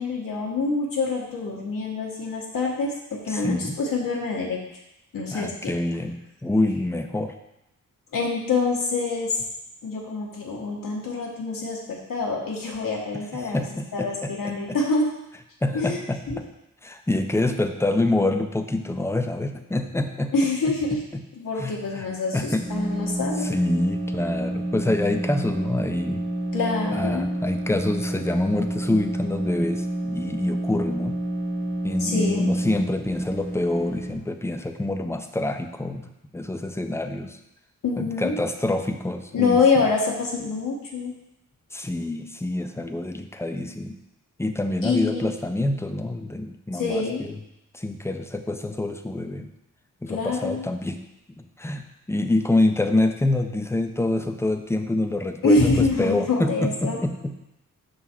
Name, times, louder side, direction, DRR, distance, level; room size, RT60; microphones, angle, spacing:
voice 1, 0.0-4.6 5.1-5.7 8.1-9.4 9.8-13.6 13.9-15.1 15.7-16.0 16.3-16.4 20.3-21.0 21.3-23.5 26.5-27.3 32.0-32.5 37.8-38.3 39.3-41.1 44.8-45.3 46.7-47.3 50.1-50.7 55.4-57.0, left 3 dB, 75° left, -3 dB, 1.1 m, -25 dB
voice 2, 3.3-3.8 5.3-7.3 13.1-14.8 15.6-16.4 16.8-20.3 20.6-20.7 21.1-21.2 21.6-22.1 22.3-22.6 23.4-26.3 26.9-31.2 31.8-36.1 36.3-37.4 38.0-39.8 41.7-44.0 44.4-47.4 47.7-49.5 50.0-51.0 51.4-57.4, left 2 dB, 10° left, 6 dB, 0.4 m, -26 dB
sound 1, 22.4-34.2, right 1 dB, 40° right, 1.4 m, -29 dB
5.7 x 4.0 x 4.2 m, 0.88 s
cardioid pair, 80°, 33 cm